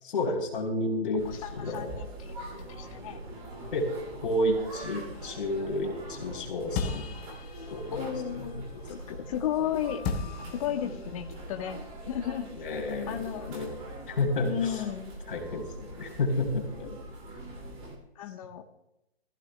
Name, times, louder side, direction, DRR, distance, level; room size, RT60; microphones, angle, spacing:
voice 1, 0.0-1.2 1.5-1.9 3.7-3.9 4.2-7.0 7.7-8.1 8.5-8.6 9.1-9.2 12.6-13.8 14.1-14.8 15.3-17.0, left 1 dB, 55° left, 1 dB, 3.6 m, -31 dB
voice 2, 1.2-2.4 2.7-3.2 7.9-8.6 8.9-10.0 10.5-11.8 12.1-12.5 13.1-13.5 14.4-15.1 18.1-18.6, left 10 dB, 35° left, 5 dB, 1.2 m, -33 dB
sound 1, 1.2-18.0, right 1 dB, 15° right, 2.5 m, -42 dB
sound 2, 5.1-9.6 10.0-13.5, left 5 dB, 15° left, 0.8 m, -40 dB
22.0 x 15.0 x 2.2 m, 0.85 s
hypercardioid pair, 150°, 32 cm